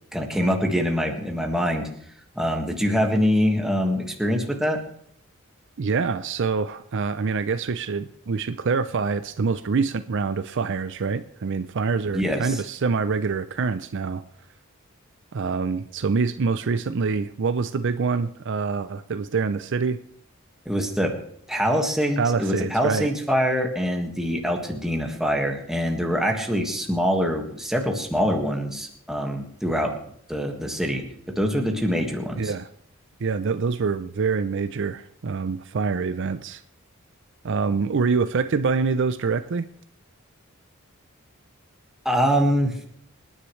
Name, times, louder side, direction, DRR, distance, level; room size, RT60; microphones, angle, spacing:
voice 1, 0.1-1.9 2.4-4.8 12.1-12.6 20.7-21.1 21.5-29.9 30.3-31.0 31.4-32.5 42.1-42.8, equal, ahead, 2 dB, 1.7 m, -24 dB
voice 2, 5.8-14.2 15.3-20.0 22.2-23.1 32.4-32.7 33.2-36.6 37.4-39.6, right 5 dB, 60° right, 12 dB, 0.5 m, -25 dB
26.5 x 10.0 x 3.2 m, 0.68 s
head